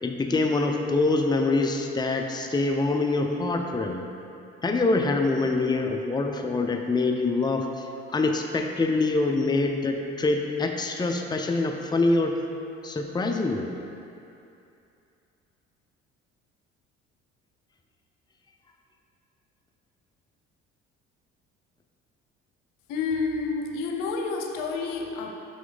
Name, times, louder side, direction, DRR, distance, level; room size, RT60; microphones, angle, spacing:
voice 1, 0.0-4.0 4.6-7.9 8.1-12.3 12.8-13.7, left 3 dB, 15° left, 3 dB, 0.6 m, -25 dB
voice 2, 22.9-25.3, left 4 dB, 75° left, 3 dB, 0.7 m, -29 dB
6.1 x 6.0 x 4.0 m, 2.7 s
hypercardioid pair, 55°, 32 cm